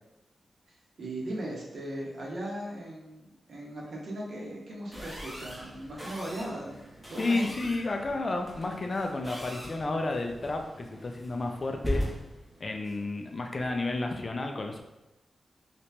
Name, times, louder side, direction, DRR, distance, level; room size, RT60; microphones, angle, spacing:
voice 1, 1.0-6.8 7.1-7.5, right 1 dB, 60° right, -3 dB, 0.9 m, -38 dB
sound 1, 4.9-14.0, equal, 10° right, 0.7 m, -40 dB
voice 2, 7.2-12.1 12.6-14.8, left 2 dB, 30° left, 3 dB, 0.3 m, -31 dB
2.9 x 2.8 x 3.2 m, 0.95 s
wide cardioid pair, 180°, 0 cm